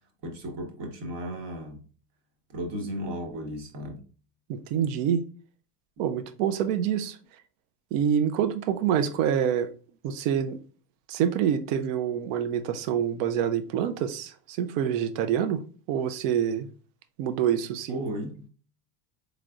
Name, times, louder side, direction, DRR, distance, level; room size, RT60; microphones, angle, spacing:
voice 1, 0.2-1.9 2.5-4.0 17.9-18.5, equal, 55° right, 1.3 m, -35 dB
voice 2, 4.5-5.2 6.0-7.2 7.9-9.7 10.0-10.6 11.1-15.6 15.9-16.7 17.2-18.0, right 9 dB, 75° right, 0.6 m, -26 dB
3.8 x 3.3 x 2.4 m
supercardioid pair, 95°, 47 cm